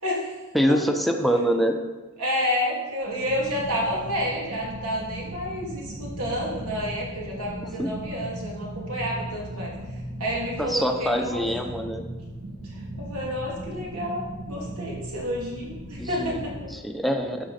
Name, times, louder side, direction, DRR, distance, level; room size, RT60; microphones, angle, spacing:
voice 1, 0.0-0.4 0.7-0.8 2.2-9.7 10.2-11.7 12.6-16.7, equal, 85° right, -3 dB, 2.8 m, -30 dB
voice 2, 0.5-1.8 7.8-7.9 10.6-12.0 16.0-16.4 16.8-17.5, equal, ahead, 4 dB, 0.7 m, -24 dB
sound 1, 3.0-16.6, right 1 dB, 70° right, 1.6 m, -37 dB
11.5 x 6.2 x 4.3 m, 1.2 s
head